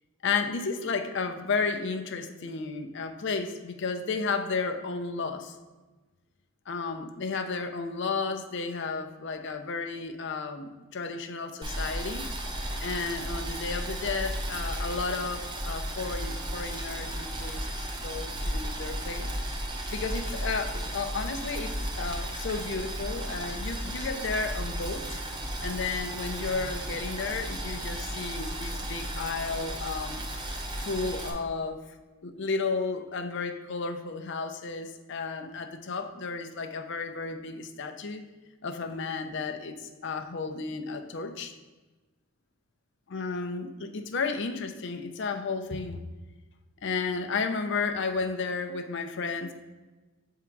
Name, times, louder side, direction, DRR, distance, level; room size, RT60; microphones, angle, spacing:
voice 1, 0.2-5.5 6.7-12.2 12.8-19.3 19.9-25.2 25.6-30.3 30.8-31.8 32.2-38.2 38.6-39.8 40.0-41.5 43.1-46.0 46.8-49.5, left 4 dB, 55° left, 6 dB, 0.5 m, -33 dB
Boiling, 11.6-31.3, right 1 dB, 20° right, 0.6 m, -34 dB
6.9 x 3.7 x 4.5 m, 1.2 s
head